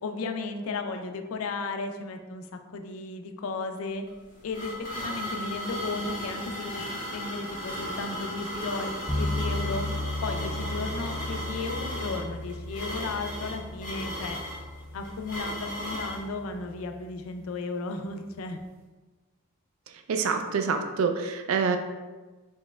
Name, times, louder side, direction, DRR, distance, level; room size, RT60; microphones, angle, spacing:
voice 1, 0.0-4.0 4.4-6.8 7.1-9.8 10.2-14.4 14.9-18.6, left 3 dB, 75° left, 6 dB, 0.4 m, -34 dB
sound 1, 4.1-16.2, equal, 40° left, 1.2 m, -36 dB
sound 2, 9.1-17.2, left 2 dB, 10° right, 0.5 m, -35 dB
voice 2, 20.1-21.8, right 5 dB, 80° right, 7 dB, 0.4 m, -26 dB
4.4 x 3.0 x 2.3 m, 1.3 s
head